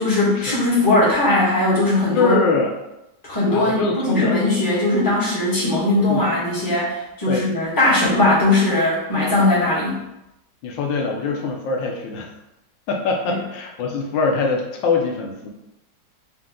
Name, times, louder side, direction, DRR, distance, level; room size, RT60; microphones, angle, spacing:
voice 1, 0.0-2.4 3.2-10.0 13.3-13.4, left 2 dB, 15° left, -8 dB, 1.2 m, -19 dB
voice 2, 2.1-2.8 3.5-4.4 6.1-6.4 7.3-7.5 10.6-12.3 12.9-15.5, left 4 dB, 85° left, 1 dB, 1.4 m, -23 dB
4.4 x 2.6 x 3.6 m, 0.91 s
omnidirectional pair, 2.0 m